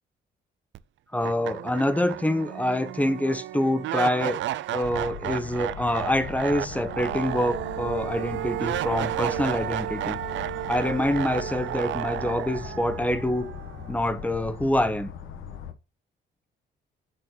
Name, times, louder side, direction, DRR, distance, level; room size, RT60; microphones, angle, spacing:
sound 1, 0.7-0.8 1.2-14.3, right 14 dB, 70° right, 0.5 m, -33 dB
voice 1, 1.1-4.4 4.7-10.2 10.7-13.5 13.9-15.1, left 1 dB, 5° left, 1.1 m, -26 dB
sound 2, 4.8-15.7, left 7 dB, 85° left, 1.2 m, -40 dB
8.2 x 4.3 x 2.8 m
cardioid pair, 90°, 20 cm